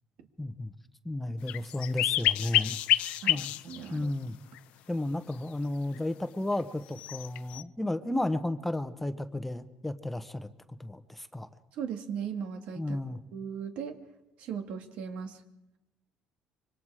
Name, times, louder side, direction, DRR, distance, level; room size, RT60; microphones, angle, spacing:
voice 1, 0.4-0.7 1.0-3.5 3.9-4.4 4.9-10.5 10.8-11.5 12.8-13.2, left 1 dB, 5° left, 9 dB, 1.0 m, -33 dB
sound 1, 1.5-3.9 4.6-4.7 7.0-7.6, left 14 dB, 80° left, 0.7 m, -28 dB
voice 2, 3.2-4.1 11.7-13.0 13.3-14.0 14.4-15.4, right 7 dB, 75° right, 5 dB, 2.2 m, -38 dB
26.0 x 24.0 x 4.9 m, 0.93 s
cardioid pair, 125°, 2 cm